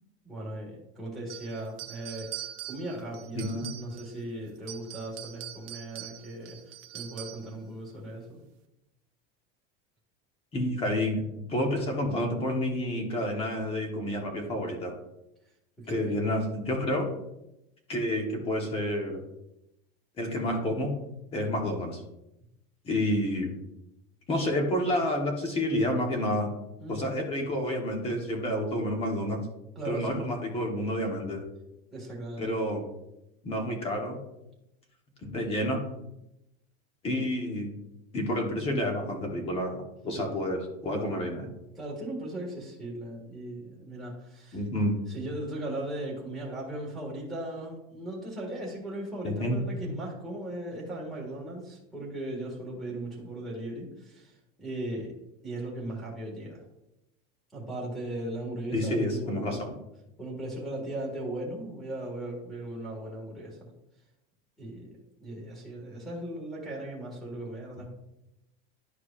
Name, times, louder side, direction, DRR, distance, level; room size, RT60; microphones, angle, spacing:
voice 1, 0.2-2.3 2.7-6.6 6.9-8.4 15.8-16.2 26.8-27.1 29.7-30.3 31.9-32.6 41.7-44.6 45.1-54.3 54.6-55.1 55.4-56.6 57.5-59.7 60.2-63.7 64.6-64.9 65.2-67.9, right 1 dB, ahead, -2 dB, 1.7 m, -37 dB
sound 1, 1.3-4.2 4.6-7.5, right 13 dB, 30° right, 0.4 m, -43 dB
voice 2, 3.3-3.7 10.5-15.0 15.9-17.1 17.9-19.2 20.2-20.9 21.3-22.0 22.8-23.6 24.3-26.5 26.9-29.4 29.8-31.4 32.4-32.8 33.4-34.2 35.2-35.8 37.0-37.7 38.1-41.5 44.5-44.9 49.2-49.6 58.7-59.7, left 1 dB, 20° left, 2 dB, 1.0 m, -29 dB
11.5 x 4.6 x 2.4 m, 0.88 s
supercardioid pair, 180°, 31 cm